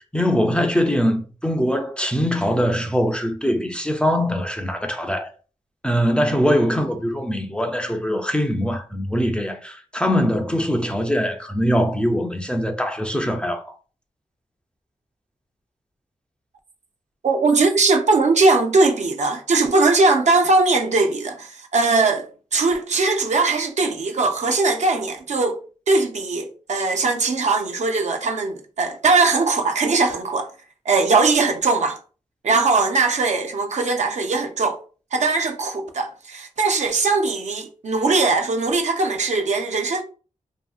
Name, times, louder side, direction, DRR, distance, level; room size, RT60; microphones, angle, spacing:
voice 1, 0.1-5.3 5.8-13.6, equal, 10° left, 0.4 m, -22 dB
voice 2, 17.2-25.6 25.9-30.5 30.9-32.0 32.4-34.8 35.1-40.0, right 3 dB, 65° right, 0.5 m, -20 dB
2.7 x 2.6 x 2.3 m
cardioid pair, 70°, 13 cm